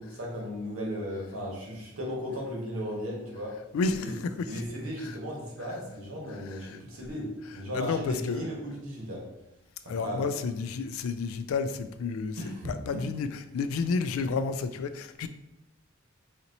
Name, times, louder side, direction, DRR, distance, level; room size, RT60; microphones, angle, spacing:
voice 1, 0.0-3.6 3.9-4.1 4.5-9.3 9.8-10.2 12.4-13.0, equal, 80° right, -2 dB, 1.2 m, -36 dB
voice 2, 3.7-4.6 5.0-5.2 6.4-6.8 7.7-8.5 9.9-12.4 12.6-15.3, left 4 dB, 80° left, 11 dB, 0.3 m, -31 dB
4.2 x 2.8 x 2.6 m, 0.89 s
head